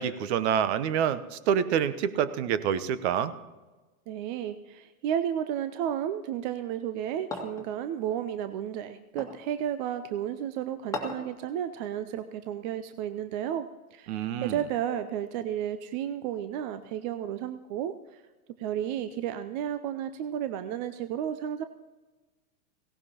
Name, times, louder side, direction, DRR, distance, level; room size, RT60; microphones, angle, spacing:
voice 1, 0.0-3.3 14.1-14.5, right 8 dB, 50° right, 14 dB, 0.9 m, -27 dB
voice 2, 4.1-18.2 18.6-21.6, right 10 dB, 30° right, 11 dB, 0.5 m, -32 dB
sound 1, 7.3-7.7 9.2-9.5 10.9-11.3, left 2 dB, 5° left, 2.0 m, -36 dB
18.0 x 17.0 x 2.9 m, 1.2 s
hypercardioid pair, 110°, 44 cm